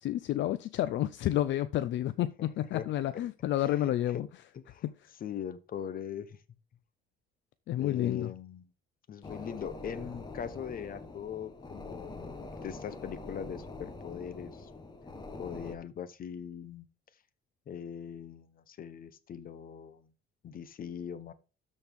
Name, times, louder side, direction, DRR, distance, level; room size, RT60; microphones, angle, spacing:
voice 1, 0.0-4.3 4.8-4.9 7.7-8.3, left 13 dB, 65° left, 0.5 m, -30 dB
voice 2, 3.6-4.2 4.5-4.8 5.2-6.4 7.8-8.7 9.1-12.4 12.6-14.7 15.4-16.9 17.7-20.1 20.4-21.3, left 8 dB, 45° left, 0.9 m, -41 dB
sound 1, 9.2-15.8, left 3 dB, 20° left, 1.2 m, -44 dB
13.0 x 4.4 x 3.5 m
cardioid pair, 140°, 21 cm